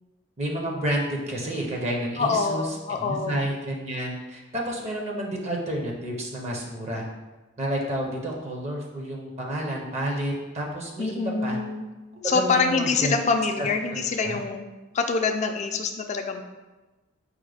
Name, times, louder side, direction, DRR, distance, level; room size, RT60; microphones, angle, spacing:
voice 1, 0.4-2.7 3.0-7.0 7.6-11.6 12.1-13.2 13.6-14.4, right 1 dB, 35° right, 0 dB, 0.6 m, -30 dB
voice 2, 2.2-3.5 11.0-11.8 12.2-14.6 14.9-16.4, left 4 dB, 35° left, 5 dB, 0.4 m, -25 dB
4.9 x 2.1 x 4.8 m, 1.2 s
head